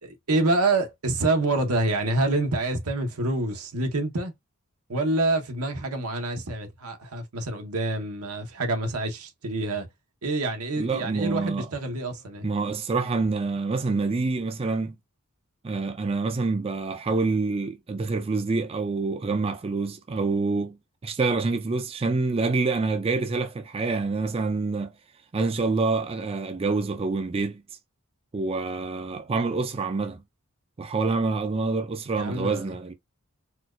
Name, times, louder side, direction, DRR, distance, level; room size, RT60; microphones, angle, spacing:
voice 1, 0.0-4.3 4.9-9.9 10.2-12.5 32.2-32.7, right 2 dB, 90° right, 1.0 m, -27 dB
voice 2, 10.8-11.7 12.4-15.0 15.6-20.8 21.0-24.9 25.3-27.6 28.3-30.2 30.8-32.9, right 3 dB, 25° right, 0.4 m, -26 dB
4.3 x 2.3 x 2.4 m
head